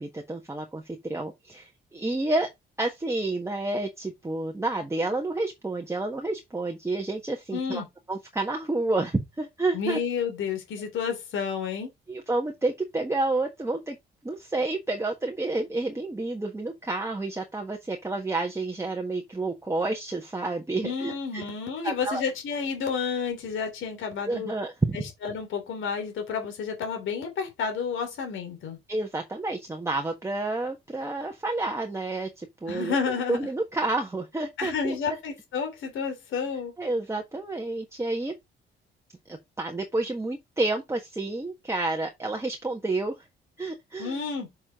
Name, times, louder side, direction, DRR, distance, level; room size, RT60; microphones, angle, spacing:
voice 1, 0.0-2.5 2.8-7.8 8.1-10.0 12.1-14.0 14.2-21.4 21.8-22.2 24.3-25.0 28.9-33.0 33.3-35.0 36.8-38.3 39.3-43.3 43.6-44.2, right 2 dB, 15° right, 1.4 m, -29 dB
voice 2, 7.5-7.9 9.7-11.9 20.8-24.5 25.2-28.8 32.7-33.5 34.6-36.7 44.0-44.5, left 6 dB, 75° left, 3.4 m, -30 dB
6.5 x 6.2 x 3.6 m
cardioid pair, 90°, 20 cm